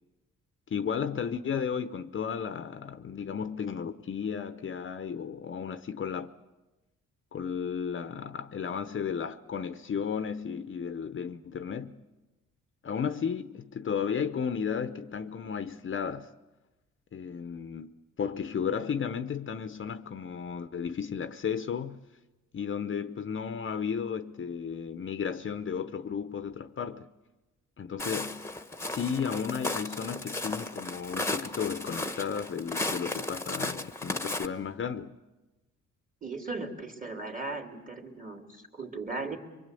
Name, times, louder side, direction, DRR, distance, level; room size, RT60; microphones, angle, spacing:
voice 1, 0.7-6.3 7.3-12.0 12.8-16.3 17.1-22.0 22.5-27.1 27.8-28.5 28.8-35.2, left 7 dB, 40° left, 0.9 m, -34 dB
Walk footsteps, 28.0-34.5, left 2 dB, 10° left, 1.2 m, -35 dB
voice 2, 36.2-39.4, right 3 dB, 25° right, 3.2 m, -37 dB
24.5 x 23.0 x 8.4 m
cardioid pair, 90°, 30 cm